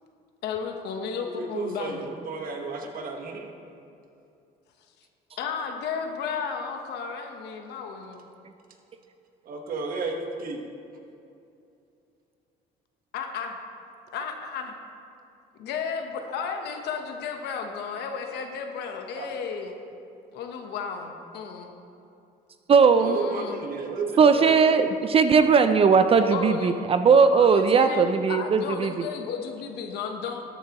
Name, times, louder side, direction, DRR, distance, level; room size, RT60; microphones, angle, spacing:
voice 1, 0.4-2.1 5.4-8.3 13.1-13.6 14.1-14.8 15.5-19.7 20.3-21.7 23.0-23.7 26.3-26.8 27.3-30.4, left 6 dB, 80° left, 4 dB, 1.1 m, -33 dB
voice 2, 1.2-3.5 9.4-10.6 19.2-19.3 23.0-24.5, right 3 dB, 60° right, 3 dB, 1.3 m, -33 dB
voice 3, 22.7-23.2 24.2-28.9, right 5 dB, 35° right, 9 dB, 0.4 m, -18 dB
13.0 x 9.1 x 3.0 m, 2.7 s
cardioid pair, 110°, 17 cm